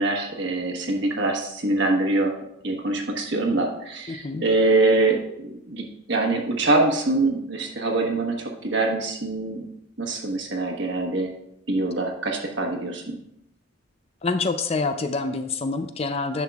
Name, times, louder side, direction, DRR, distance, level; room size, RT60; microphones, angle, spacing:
voice 1, 0.0-2.3 2.6-9.7 10.0-11.3 11.7-13.2, right 2 dB, 60° right, 2 dB, 1.3 m, -24 dB
voice 2, 4.1-4.4 14.2-16.4, left 3 dB, 30° left, 9 dB, 0.4 m, -26 dB
10.5 x 6.3 x 2.4 m, 0.79 s
head